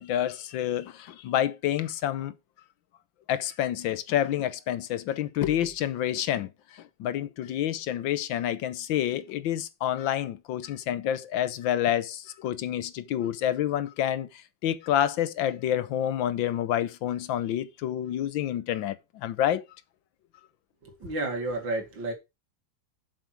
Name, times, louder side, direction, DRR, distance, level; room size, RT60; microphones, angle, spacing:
voice 1, 0.0-2.3 3.3-19.6, left 11 dB, 80° left, 1.5 m, -28 dB
voice 2, 20.8-22.1, right 2 dB, 70° right, 3.1 m, -31 dB
7.6 x 7.1 x 4.6 m
omnidirectional pair, 2.1 m